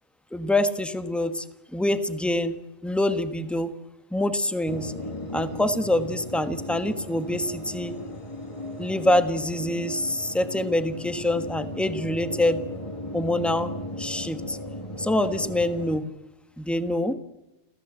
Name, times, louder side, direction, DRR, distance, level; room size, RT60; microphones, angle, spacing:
voice 1, 0.3-1.4 1.7-2.6 2.8-3.7 4.1-4.9 5.3-8.0 8.8-12.6 13.1-13.7 14.0-14.6 15.0-16.0 16.6-17.1, left 1 dB, ahead, 10 dB, 1.3 m, -25 dB
sound 1, 4.7-16.0, left 1 dB, 25° left, 2.2 m, -36 dB
29.5 x 15.0 x 7.9 m, 1.0 s
omnidirectional pair, 1.2 m